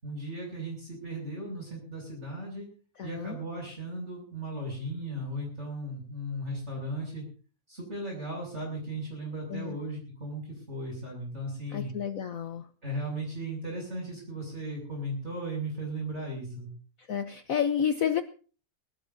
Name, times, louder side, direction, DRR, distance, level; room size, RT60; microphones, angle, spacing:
voice 1, 0.0-2.7 3.0-7.2 7.7-11.9 12.8-16.7, right 1 dB, 40° right, -1 dB, 7.4 m, -36 dB
voice 2, 3.0-3.4 9.5-9.8 11.7-12.7 17.1-18.2, left 8 dB, 55° left, 8 dB, 1.2 m, -30 dB
22.0 x 20.0 x 2.8 m, 0.40 s
omnidirectional pair, 1.9 m